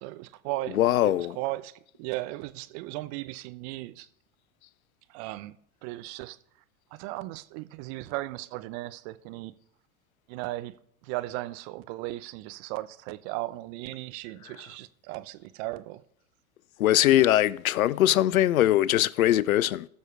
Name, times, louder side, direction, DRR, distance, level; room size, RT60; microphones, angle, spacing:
voice 1, 0.0-4.1 5.1-5.6 5.8-6.4 6.9-9.5 10.3-10.7 11.0-16.0, right 18 dB, 50° right, 0.8 m, -36 dB
voice 2, 0.7-1.4 16.8-19.9, left 13 dB, 85° left, 0.5 m, -21 dB
19.5 x 6.5 x 3.3 m
hypercardioid pair, 90°, 41 cm